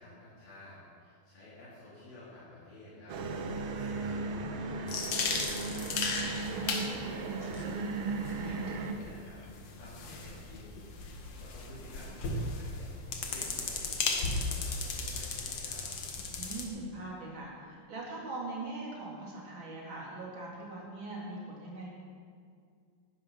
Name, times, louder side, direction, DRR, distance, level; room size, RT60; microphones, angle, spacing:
voice 1, 0.0-6.0 6.4-10.6 11.4-15.9, left 1 dB, 80° left, -11 dB, 5.9 m, -51 dB
sound 1, 3.1-8.9, right 4 dB, 65° right, 1.5 m, -36 dB
sound 2, 4.9-16.6, left 4 dB, 55° left, 2.4 m, -36 dB
voice 2, 16.3-21.9, right 2 dB, 35° right, -4 dB, 4.1 m, -41 dB
19.0 x 12.0 x 5.9 m, 2.2 s
omnidirectional pair, 4.1 m